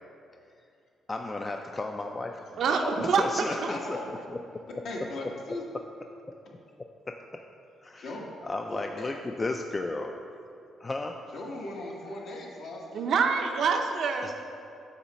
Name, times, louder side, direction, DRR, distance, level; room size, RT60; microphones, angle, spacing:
voice 1, 1.1-2.6 3.0-4.6 5.7-5.8 6.8-7.4 7.8-8.1 8.4-10.2 10.8-11.2 14.2-14.3, left 2 dB, 25° left, 3 dB, 0.3 m, -34 dB
voice 2, 2.6-3.2 3.6-3.7 12.9-14.3, right 5 dB, 65° right, 4 dB, 0.6 m, -26 dB
voice 3, 3.7-4.1 4.8-5.6 8.0-8.2 9.0-9.1 11.3-13.1, left 2 dB, 70° left, -2 dB, 1.2 m, -38 dB
8.0 x 3.1 x 6.0 m, 2.5 s
cardioid pair, 90°, 0 cm